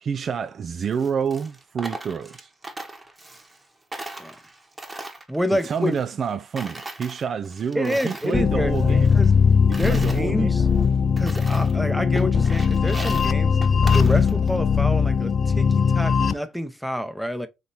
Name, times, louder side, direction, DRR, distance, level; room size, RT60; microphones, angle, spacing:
voice 1, 0.0-2.5 5.6-9.1 9.9-10.5, right 6 dB, 45° right, 0.3 m, -28 dB
Coin (dropping), 0.8-3.6 3.9-6.3 6.6-8.4 8.7-10.2 10.7-10.8 11.2-11.8 12.1-14.6, right 2 dB, 20° right, 1.1 m, -39 dB
voice 2, 5.3-6.0 7.7-9.3 9.7-10.7 11.2-13.6 13.9-17.5, equal, 5° right, 0.8 m, -28 dB
sound 1, 8.3-16.3, left 6 dB, 40° left, 0.3 m, -20 dB
4.0 x 3.0 x 4.2 m
hypercardioid pair, 60°, 0 cm